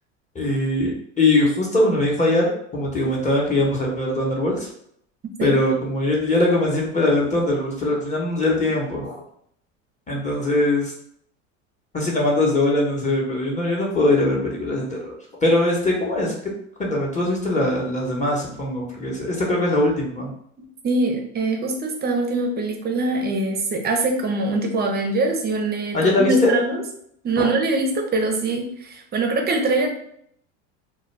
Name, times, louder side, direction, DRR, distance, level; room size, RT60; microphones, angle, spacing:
voice 1, 0.3-4.7 5.4-9.1 10.1-10.9 11.9-15.1 15.4-16.5 16.8-20.3 25.9-26.5 27.4-27.5, left 1 dB, 20° left, -3 dB, 0.9 m, -21 dB
voice 2, 20.8-26.8 27.2-29.9, right 2 dB, 25° right, 3 dB, 0.6 m, -23 dB
2.3 x 2.2 x 3.1 m, 0.69 s
supercardioid pair, 95°, 38 cm